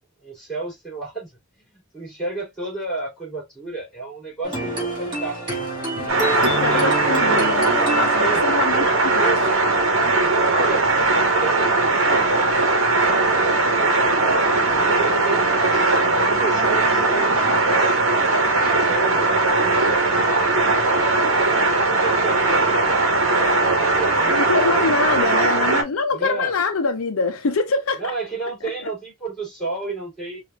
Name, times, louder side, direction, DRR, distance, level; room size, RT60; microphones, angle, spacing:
voice 1, 0.2-1.3 1.7-5.5 5.8-7.5 8.2-9.5 10.2-18.0 18.5-20.8 21.2-21.6 21.9-25.0 26.1-26.5 27.9-30.4, right 3 dB, 5° left, 2.8 m, -32 dB
sound 1, 4.4-10.0, right 1 dB, 25° right, 2.3 m, -29 dB
sound 2, 6.1-25.8, right 3 dB, 70° right, 1.0 m, -19 dB
voice 2, 6.4-8.9 9.1-9.4 24.3-28.1 28.6-28.9, left 4 dB, 80° left, 0.5 m, -24 dB
4.8 x 2.5 x 2.2 m
head